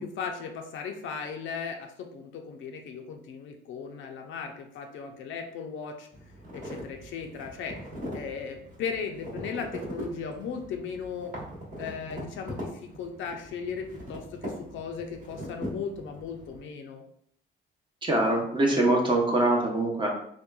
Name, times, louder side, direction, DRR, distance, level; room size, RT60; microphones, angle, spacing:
voice 1, 0.0-6.1 6.5-7.8 8.1-11.3 11.8-17.0, left 6 dB, 75° left, 4 dB, 0.4 m, -37 dB
sound 1, 6.1-16.6, equal, 40° right, 1.0 m, -41 dB
voice 2, 18.0-20.1, right 2 dB, 25° right, -2 dB, 0.6 m, -23 dB
2.9 x 2.2 x 2.2 m, 0.67 s
cardioid pair, 90°, 20 cm